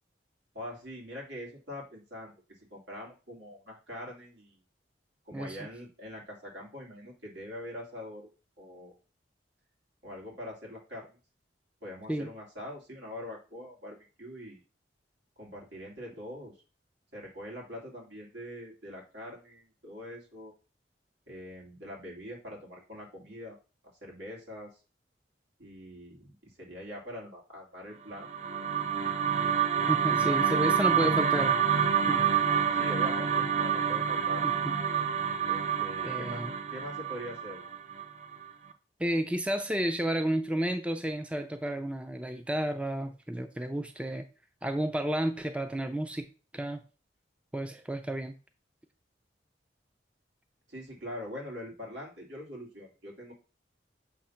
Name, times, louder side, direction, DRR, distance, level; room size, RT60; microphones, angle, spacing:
voice 1, 0.5-2.3 2.7-4.6 5.3-8.3 8.6-8.9 10.0-11.2 11.8-14.6 15.4-16.5 17.1-20.5 21.3-23.6 24.0-24.7 25.6-28.3 32.8-34.4 35.4-36.4 36.7-37.6 50.7-53.3, left 1 dB, 80° right, -1 dB, 2.7 m, -43 dB
sound 1, 28.1-38.4, right 7 dB, 40° right, 0.7 m, -28 dB
voice 2, 29.9-31.6 32.1-32.2 34.4-34.7 36.0-36.5 39.0-44.2 44.6-46.3 46.5-46.8 47.5-48.3, right 1 dB, 5° right, 7 dB, 0.5 m, -31 dB
7.2 x 2.9 x 5.7 m, 0.34 s
head